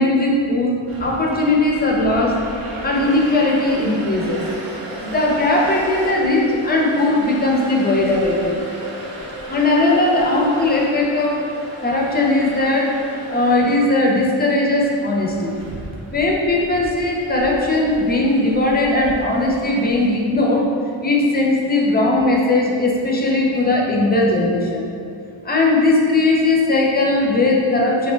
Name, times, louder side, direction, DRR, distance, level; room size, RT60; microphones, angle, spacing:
voice 1, 0.0-2.4 2.8-4.5 5.0-8.6 9.5-11.4 11.8-13.0 13.3-15.5 16.1-20.7 21.0-24.8 25.4-28.1, left 2 dB, 20° left, -2 dB, 0.4 m, -18 dB
sound 1, 0.9-20.2, right 1 dB, 80° right, 0.6 m, -35 dB
2.6 x 2.1 x 3.1 m, 2.5 s
wide cardioid pair, 50°, 49 cm